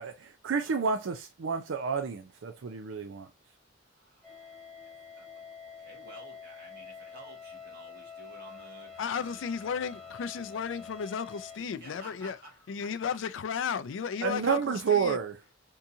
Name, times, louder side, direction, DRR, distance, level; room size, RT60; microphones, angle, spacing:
voice 1, 0.0-3.3 14.2-15.4, right 6 dB, 90° right, 0.5 m, -30 dB
voice 2, 3.9-9.2 9.9-10.0 11.6-12.9, right 2 dB, 55° right, 1.6 m, -53 dB
sound 1, 4.2-11.6, left 6 dB, ahead, 1.1 m, -47 dB
voice 3, 9.0-12.4 12.7-15.2, left 6 dB, 75° left, 0.4 m, -34 dB
3.7 x 2.8 x 2.6 m
head